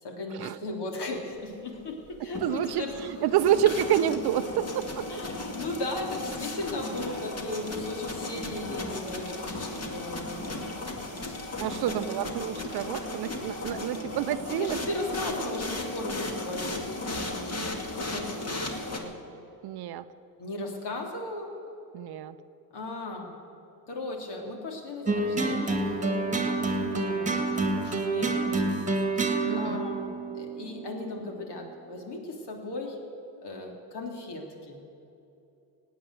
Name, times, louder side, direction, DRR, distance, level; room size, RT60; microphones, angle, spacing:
voice 1, 0.0-3.1 5.1-10.6 11.1-12.0 14.5-19.2 20.4-21.5 22.7-23.3 23.9-28.8 29.2-33.0 33.4-34.8, left 2 dB, 55° left, 2 dB, 3.4 m, -37 dB
sound 1, 2.1-19.0, left 2 dB, 30° left, 2.3 m, -36 dB
voice 2, 2.4-5.2 11.6-14.8 19.6-20.1 21.9-22.4 29.4-29.8, right 11 dB, 50° right, 13 dB, 0.7 m, -28 dB
sound 2, 25.1-31.5, right 3 dB, 15° right, 2.0 m, -28 dB
17.0 x 9.3 x 8.2 m, 2.8 s
hypercardioid pair, 75°, 50 cm